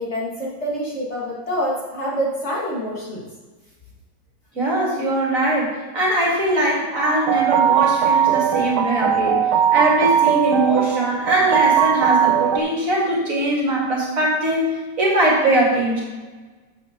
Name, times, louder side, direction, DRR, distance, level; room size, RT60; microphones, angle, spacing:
voice 1, 0.0-3.2, equal, 35° left, -6 dB, 2.2 m, -26 dB
voice 2, 4.5-9.4 9.7-16.0, right 1 dB, 45° right, -4 dB, 2.5 m, -21 dB
sound 1, 6.9-12.6, right 8 dB, 75° right, 1.4 m, -19 dB
12.5 x 7.2 x 3.0 m, 1.3 s
omnidirectional pair, 2.0 m